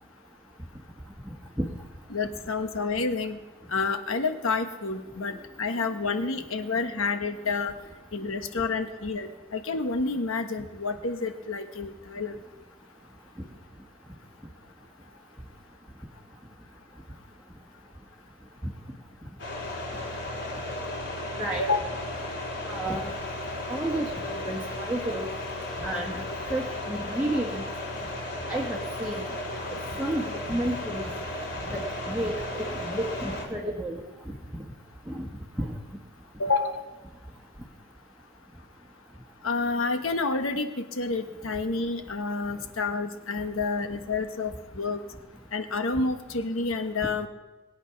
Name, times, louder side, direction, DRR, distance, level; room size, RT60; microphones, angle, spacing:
voice 1, 2.1-3.4 3.7-7.7 8.1-12.4 21.6-21.8 36.4-36.8 39.4-45.0 45.5-47.3, left 3 dB, 75° left, 7 dB, 1.2 m, -29 dB
sound 1, 19.4-33.4, left 1 dB, 55° left, 3.4 m, -35 dB
voice 2, 22.6-23.1 23.7-25.3 25.8-26.2 26.5-27.6 28.5-29.3 30.0-31.0 31.7-34.3 35.1-35.3 35.6-35.7, right 1 dB, 5° right, -3 dB, 1.3 m, -31 dB
21.0 x 8.4 x 5.8 m, 1.2 s
head